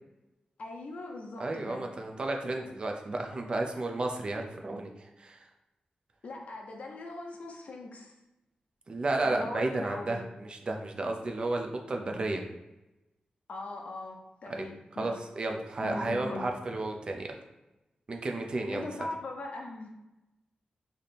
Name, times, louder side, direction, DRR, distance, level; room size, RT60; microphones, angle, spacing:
voice 1, 0.6-1.9 6.2-8.1 9.2-10.3 13.5-15.1 15.8-16.5 18.7-19.9, left 2 dB, 55° left, 1 dB, 0.7 m, -40 dB
voice 2, 1.4-5.5 8.9-12.4 14.4-14.7 14.9-17.3 18.1-18.9, right 2 dB, 35° right, 3 dB, 0.5 m, -33 dB
3.3 x 2.7 x 4.1 m, 1.0 s
wide cardioid pair, 160°, 3 cm